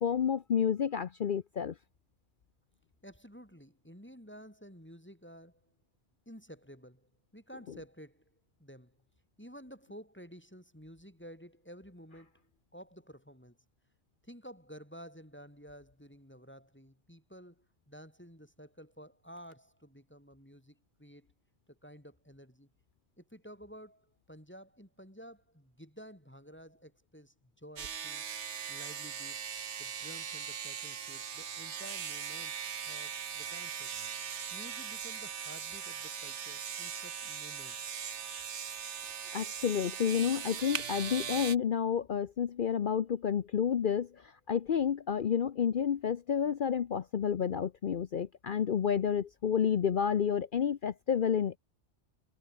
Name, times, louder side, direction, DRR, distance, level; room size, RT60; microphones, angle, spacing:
voice 1, 0.0-1.7 39.3-44.1 44.5-51.6, left 8 dB, 55° left, 0.8 m, -30 dB
voice 2, 3.0-5.7 6.3-8.2 8.6-9.0 9.4-12.4 12.7-13.6 14.2-21.3 21.7-22.7 23.2-28.3 28.7-29.5 29.8-34.0 34.5-37.9, equal, 10° left, 5.4 m, -52 dB
sound 1, 27.8-41.6, right 7 dB, 80° right, 1.4 m, -40 dB
omnidirectional pair, 1.2 m